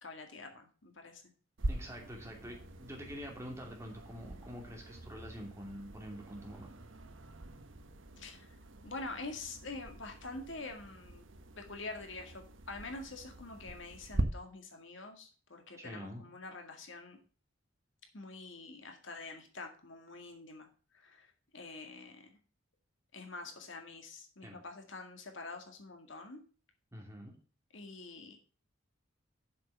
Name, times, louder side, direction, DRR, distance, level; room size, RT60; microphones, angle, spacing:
voice 1, 0.0-1.2 8.2-8.6 8.8-11.2 11.6-17.2 18.1-22.4 23.1-26.4 27.7-28.4, left 3 dB, 70° left, 4 dB, 2.0 m, -46 dB
sound 1, 1.6-14.2, right 1 dB, 70° right, 1.0 m, -43 dB
voice 2, 1.7-6.7 15.8-16.2 24.4-24.6 26.9-27.3, equal, 15° right, 0 dB, 2.8 m, -46 dB
7.6 x 6.8 x 6.5 m, 0.39 s
head